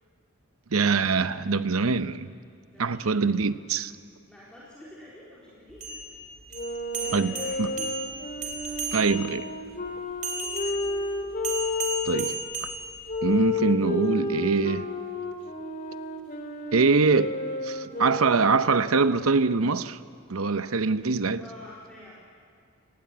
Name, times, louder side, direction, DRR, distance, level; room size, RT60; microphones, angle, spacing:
voice 1, 0.7-2.3 2.8-3.9 7.1-7.3 7.6-7.7 8.9-9.5 12.0-12.3 13.2-14.9 16.7-17.3 17.6-20.0 20.3-21.4, right 4 dB, 80° right, 0.8 m, -23 dB
voice 2, 2.6-3.3 4.3-6.0 6.9-7.9 10.4-11.0 21.4-22.1, left 1 dB, 5° left, 4.3 m, -48 dB
sound 1, 5.7-9.4 10.2-13.4, right 2 dB, 35° right, 4.1 m, -35 dB
sound 2, 6.5-12.3 13.1-18.7, left 2 dB, 40° left, 2.6 m, -32 dB
29.0 x 19.0 x 8.6 m
head